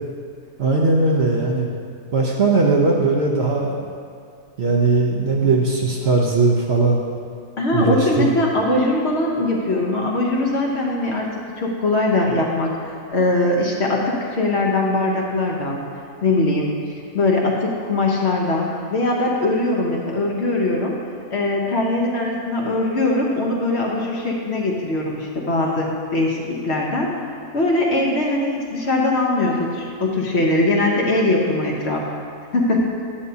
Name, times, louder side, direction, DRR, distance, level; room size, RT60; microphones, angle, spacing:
voice 1, 0.6-1.7 2.1-3.8 4.6-7.0 7.7-8.4, right 3 dB, 55° right, -2 dB, 0.9 m, -19 dB
voice 2, 7.6-11.3 11.6-12.7 13.1-15.8 16.2-16.7 17.1-21.0 21.3-27.1 27.5-32.0 32.5-32.9, left 2 dB, 55° left, -1 dB, 1.1 m, -21 dB
9.9 x 7.9 x 2.7 m, 2.3 s
omnidirectional pair, 1.5 m